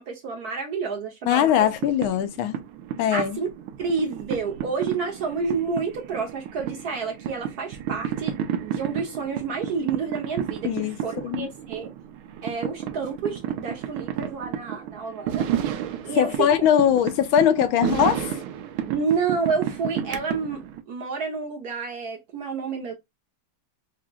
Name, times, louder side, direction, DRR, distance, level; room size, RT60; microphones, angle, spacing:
voice 1, 0.0-1.5 3.1-3.5 3.8-8.4 8.6-11.9 12.4-15.5 16.0-16.5 18.9-22.9, right 5 dB, 60° right, 1.2 m, -29 dB
voice 2, 1.3-2.6 3.0-3.4 10.6-11.0 11.2-11.5 16.1-18.4, left 10 dB, 80° left, 1.4 m, -21 dB
sound 1, 1.4-20.8, right 9 dB, 85° right, 1.5 m, -32 dB
4.9 x 2.8 x 2.2 m
omnidirectional pair, 2.3 m